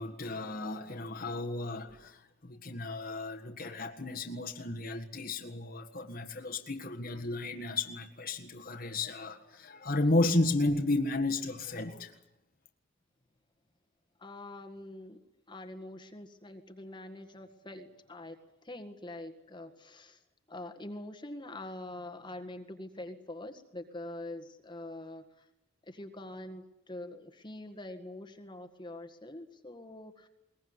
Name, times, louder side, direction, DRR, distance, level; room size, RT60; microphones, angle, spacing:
voice 1, 0.0-12.1, left 2 dB, 45° left, 1.7 m, -33 dB
voice 2, 14.2-15.2 15.5-20.2 20.5-25.5 25.8-30.3, left 1 dB, 25° left, 1.8 m, -44 dB
22.0 x 21.0 x 9.7 m
head